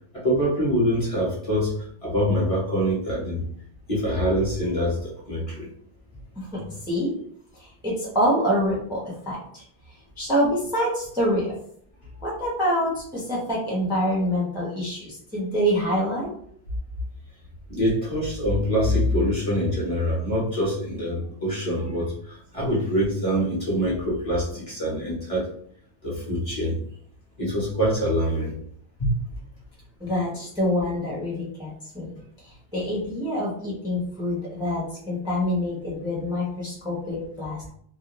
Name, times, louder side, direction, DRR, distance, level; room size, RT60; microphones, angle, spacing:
voice 1, 0.1-3.4 3.9-5.7 17.7-25.5 26.0-26.8 27.4-28.5 29.0-29.1, equal, 35° left, -7 dB, 0.9 m, -25 dB
voice 2, 6.4-7.1 7.5-9.6 9.9-11.5 12.2-16.3 30.0-37.7, equal, 5° right, -6 dB, 0.6 m, -26 dB
2.5 x 2.1 x 2.9 m, 0.64 s
omnidirectional pair, 1.1 m